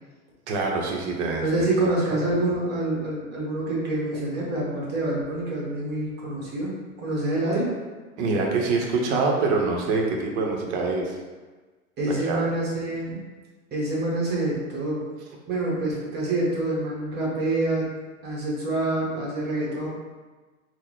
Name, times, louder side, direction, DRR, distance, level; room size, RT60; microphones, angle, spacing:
voice 1, 0.5-1.5 1.8-1.9 8.2-11.2 12.1-12.4, right 3 dB, 50° right, 0 dB, 0.8 m, -25 dB
voice 2, 1.4-7.7 12.0-13.2 13.7-15.0 15.5-17.9 18.2-19.9, right 2 dB, 25° right, -5 dB, 1.1 m, -26 dB
3.7 x 2.2 x 3.0 m, 1.3 s
hypercardioid pair, 100°, 43 cm